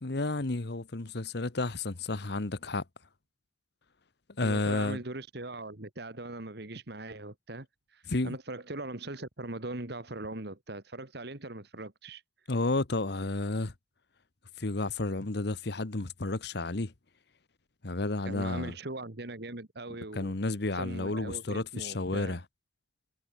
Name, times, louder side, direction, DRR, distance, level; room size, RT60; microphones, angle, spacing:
voice 1, 0.0-2.8 4.4-5.0 8.1-8.4 12.5-13.7 14.6-16.9 17.8-18.7 20.1-22.4, left 2 dB, 60° left, 1.2 m, -31 dB
voice 2, 4.4-12.2 18.2-20.3 20.7-22.4, right 2 dB, 60° right, 2.2 m, -40 dB
head